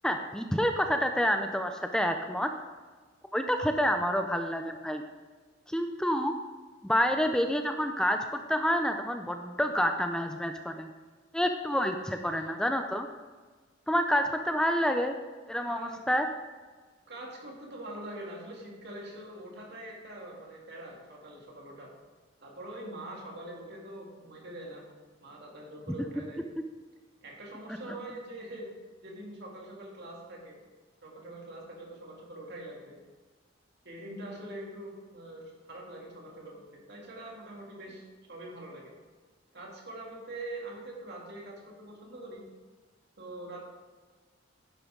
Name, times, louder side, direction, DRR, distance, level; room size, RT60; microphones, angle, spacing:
voice 1, 0.0-2.5 3.3-5.0 5.7-6.3 6.8-8.2 8.5-10.9 11.3-13.1 13.9-15.2 15.5-16.3, equal, 5° left, 5 dB, 0.5 m, -28 dB
voice 2, 12.2-12.5 15.6-16.0 17.1-21.9 22.4-24.9 25.2-26.4 27.2-28.7 29.0-30.6 31.0-33.0 33.8-38.0 38.3-38.9 39.5-42.4 43.2-43.7, right 1 dB, 60° right, -2 dB, 2.8 m, -44 dB
10.5 x 10.5 x 3.8 m, 1.4 s
head